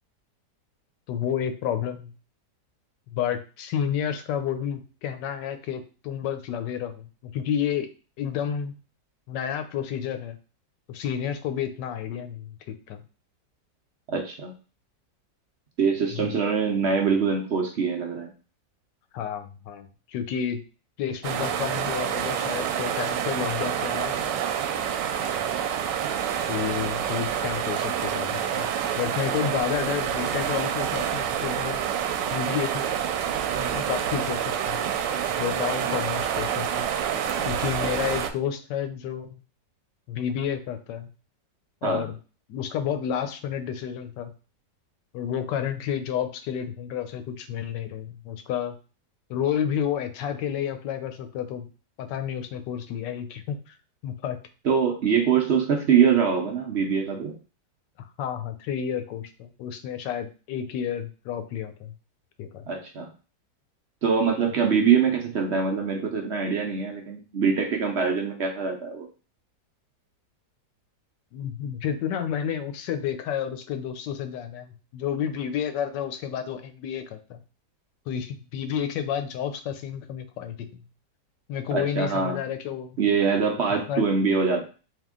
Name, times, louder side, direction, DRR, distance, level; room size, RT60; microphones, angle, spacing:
voice 1, 1.1-2.1 3.1-7.9 8.2-8.7 9.3-10.4 10.9-13.0 16.1-16.3 19.1-20.6 21.0-24.3 26.5-28.7 28.9-31.8 32.3-32.8 33.6-34.8 35.4-36.8 37.5-39.4 40.1-41.1 41.8-42.2 42.5-44.3 45.1-48.8 49.3-51.7 52.0-53.8 54.0-54.4 58.0-61.9 62.4-62.7 71.3-77.4 78.1-80.8 81.5-83.0 83.9-84.0, left 9 dB, 85° left, 8 dB, 1.3 m, -30 dB
voice 2, 14.1-14.5 15.8-18.3 37.8-38.1 41.8-42.1 54.6-57.4 62.7-63.1 64.0-69.1 81.7-82.4 83.0-84.6, right 6 dB, 55° right, 2 dB, 0.7 m, -24 dB
sound 1, 21.2-38.3, right 9 dB, 85° right, 1.2 m, -27 dB
3.6 x 2.8 x 3.6 m, 0.35 s
omnidirectional pair, 1.9 m